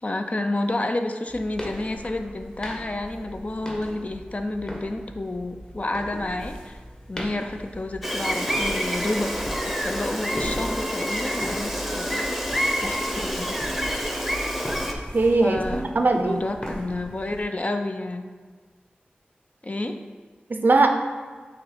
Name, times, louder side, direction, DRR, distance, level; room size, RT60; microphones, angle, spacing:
voice 1, 0.0-6.8 7.1-9.3 9.6-12.4 12.8-13.6 15.4-15.8 16.1-18.2 19.6-20.0, left 2 dB, 40° left, 6 dB, 0.5 m, -30 dB
sound 1, 1.3-17.4, equal, 25° left, 1.1 m, -38 dB
Gull seagull, 8.0-14.9, equal, ahead, 0.8 m, -27 dB
voice 2, 15.1-16.4 20.5-20.9, right 3 dB, 60° right, 5 dB, 0.6 m, -20 dB
6.5 x 3.0 x 5.0 m, 1.5 s
wide cardioid pair, 50°, 3 cm